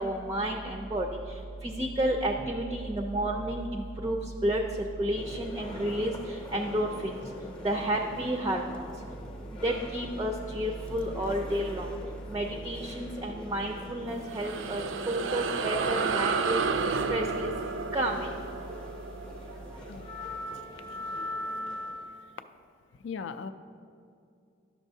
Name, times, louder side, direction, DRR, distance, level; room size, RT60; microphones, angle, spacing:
voice 1, 0.0-7.3 7.6-9.0 9.5-12.0 12.3-18.7 19.4-19.9 20.2-20.4, right 1 dB, 20° right, 2 dB, 0.4 m, -31 dB
sound 1, 5.2-22.3, left 1 dB, 25° left, 0.7 m, -42 dB
sound 2, 14.1-20.9, right 4 dB, 85° right, 0.4 m, -32 dB
voice 2, 23.0-23.5, left 5 dB, 70° left, 11 dB, 0.3 m, -38 dB
11.5 x 6.2 x 2.7 m, 2.5 s
head